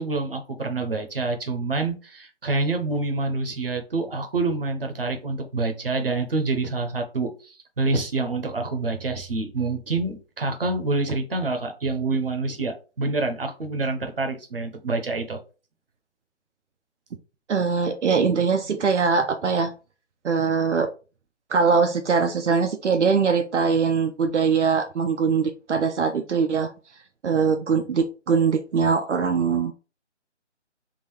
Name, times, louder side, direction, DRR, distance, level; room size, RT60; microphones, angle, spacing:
voice 1, 0.0-15.4, right 3 dB, 50° right, 5 dB, 0.8 m, -27 dB
voice 2, 17.5-19.7 20.2-20.9 21.5-26.7 27.2-29.7, right 5 dB, 75° right, 5 dB, 0.6 m, -22 dB
3.8 x 2.4 x 3.1 m, 0.33 s
figure-of-eight pair, 180°, 35 cm